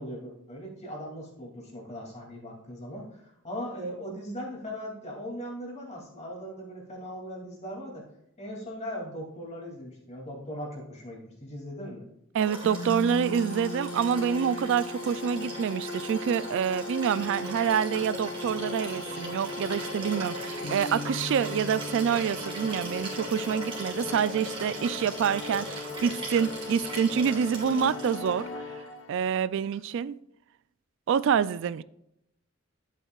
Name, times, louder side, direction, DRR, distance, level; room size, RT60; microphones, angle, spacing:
voice 1, 0.0-8.0 8.4-12.0, equal, 35° left, 2.6 m, -39 dB
voice 2, 12.3-28.5 29.1-30.2 31.1-31.8, right 7 dB, 65° right, 0.3 m, -27 dB
Liquid, 12.4-28.4 29.7-29.8, right 2 dB, 25° right, 2.3 m, -39 dB
sound 1, 12.6-29.4, left 3 dB, 65° left, 1.0 m, -38 dB
11.0 x 8.3 x 2.4 m
head